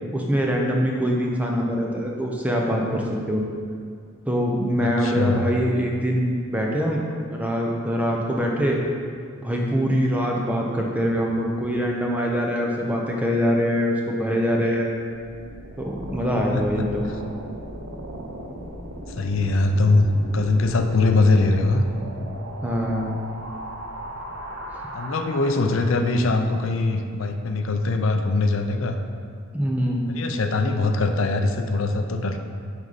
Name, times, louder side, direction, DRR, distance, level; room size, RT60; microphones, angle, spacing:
voice 1, 0.1-3.4 4.2-7.0 7.3-8.8 9.4-14.9 15.8-17.1 22.6-23.1 29.5-30.1, equal, 5° right, -1 dB, 0.7 m, -23 dB
voice 2, 4.8-5.4 16.5-16.8 19.2-21.8 24.9-29.0 30.1-32.4, left 2 dB, 65° left, 6 dB, 0.5 m, -22 dB
sound 1, 15.1-26.1, right 1 dB, 60° right, 0.8 m, -37 dB
7.8 x 5.4 x 4.1 m, 2.2 s
head